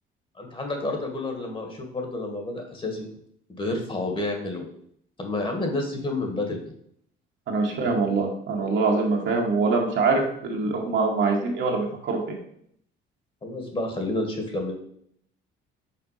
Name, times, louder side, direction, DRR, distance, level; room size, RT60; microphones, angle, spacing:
voice 1, 0.4-3.1 3.5-4.6 5.2-6.6 10.6-10.7 13.4-14.7, left 2 dB, 25° left, 3 dB, 1.7 m, -30 dB
voice 2, 7.5-12.4, right 3 dB, 60° right, 0 dB, 1.9 m, -24 dB
5.9 x 4.4 x 5.7 m, 0.67 s
cardioid pair, 115°, 21 cm